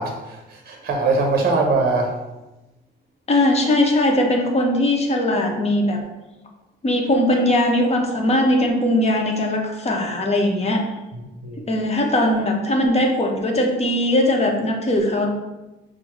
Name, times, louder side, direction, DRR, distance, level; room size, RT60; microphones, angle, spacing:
voice 1, 0.0-2.2 11.1-11.6, right 3 dB, 50° right, 2 dB, 0.7 m, -22 dB
voice 2, 3.3-6.0 6.8-10.8 11.7-15.3, left 1 dB, 30° left, 1 dB, 0.8 m, -20 dB
6.1 x 2.1 x 3.0 m, 1.0 s
cardioid pair, 90°, 20 cm